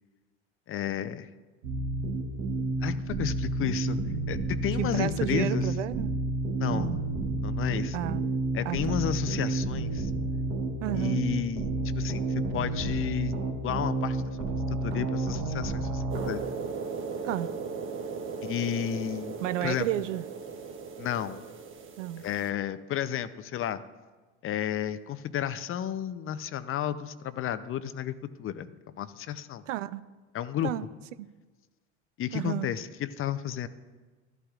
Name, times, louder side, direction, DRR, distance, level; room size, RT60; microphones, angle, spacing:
voice 1, 0.7-1.3 2.8-4.0 4.3-5.7 6.6-6.9 7.4-8.0 8.5-10.1 10.9-11.7 11.9-13.4 13.6-16.4 18.4-19.9 21.0-21.4 22.2-23.8 24.4-29.6 30.3-30.7 32.2-33.7, left 10 dB, 35° left, 13 dB, 0.6 m, -32 dB
sound 1, 1.6-16.3, right 2 dB, 65° right, 1.6 m, -30 dB
voice 2, 4.8-6.1 6.7-7.0 7.9-8.2 8.6-8.8 10.8-11.2 17.2-17.5 19.4-20.2 22.0-22.2 29.7-30.0 30.6-30.9 31.2-31.3 32.3-32.7, right 13 dB, 85° right, 15 dB, 0.5 m, -31 dB
sound 2, 16.1-22.5, right 5 dB, 35° right, 1.1 m, -37 dB
13.0 x 11.5 x 2.4 m, 1.3 s
hypercardioid pair, 75°, 36 cm